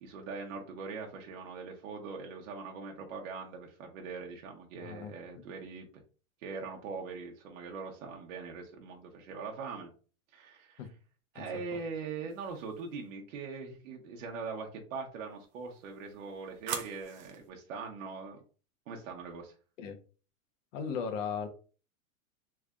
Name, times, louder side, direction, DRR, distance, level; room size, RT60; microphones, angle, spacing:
voice 1, 0.0-6.0 6.4-9.9 10.3-10.8 11.3-18.4 18.9-19.5, right 4 dB, 60° right, 1 dB, 0.9 m, -42 dB
voice 2, 4.8-5.1 10.8-10.9 11.3-11.6 19.8-20.0 20.7-21.5, left 6 dB, 60° left, 6 dB, 1.0 m, -37 dB
sound 1, 12.3-13.0 15.4-17.5, right 8 dB, 30° right, 0.5 m, -44 dB
3.4 x 3.3 x 2.4 m, 0.37 s
supercardioid pair, 150°, 43 cm